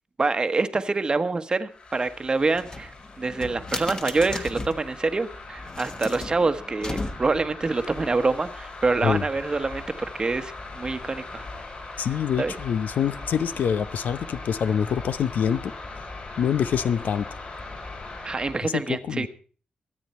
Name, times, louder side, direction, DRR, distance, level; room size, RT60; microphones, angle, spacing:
voice 1, 0.2-11.5 12.4-12.5 18.2-19.3, right 3 dB, 30° right, 1.1 m, -26 dB
sound 1, 1.7-18.7, left 3 dB, 45° left, 7.4 m, -40 dB
sound 2, 2.5-4.9 5.6-7.5, left 2 dB, 30° left, 1.5 m, -35 dB
voice 2, 12.0-15.7 16.4-17.3 18.6-19.3, left 8 dB, 85° left, 0.8 m, -25 dB
23.5 x 8.8 x 4.3 m
wide cardioid pair, 110°, 3 cm